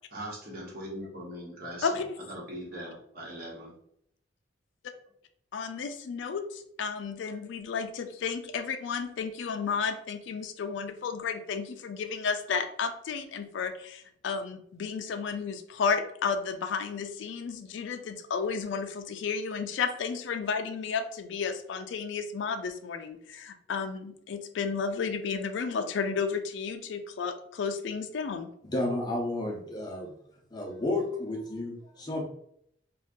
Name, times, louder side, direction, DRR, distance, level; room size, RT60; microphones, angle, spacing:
voice 1, 0.1-3.7, equal, 50° right, -4 dB, 1.0 m, -41 dB
voice 2, 5.5-28.5, left 5 dB, 70° left, 8 dB, 0.3 m, -32 dB
voice 3, 28.6-30.1 30.5-32.2, left 2 dB, 20° left, -1 dB, 0.6 m, -32 dB
2.6 x 2.3 x 3.5 m, 0.72 s
head